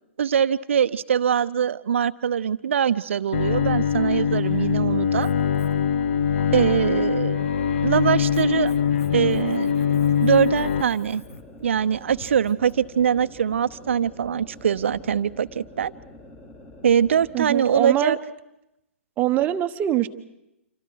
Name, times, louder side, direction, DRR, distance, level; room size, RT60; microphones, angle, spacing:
voice 1, 0.2-5.3 6.5-7.5 7.8-8.7 9.1-9.7 10.2-11.2 11.6-15.9 16.8-18.2, right 8 dB, 65° right, 13 dB, 0.8 m, -22 dB
Bowed string instrument, 3.3-10.8, left 8 dB, 60° left, 0.9 m, -23 dB
Writing, 5.0-12.7, left 3 dB, 80° left, 1.7 m, -47 dB
sound 1, 6.6-17.6, left 1 dB, 25° left, 3.6 m, -46 dB
voice 2, 17.3-18.2 19.2-20.1, right 13 dB, 25° right, 9 dB, 1.1 m, -23 dB
28.0 x 24.5 x 4.7 m, 0.87 s
figure-of-eight pair, 125°, 7 cm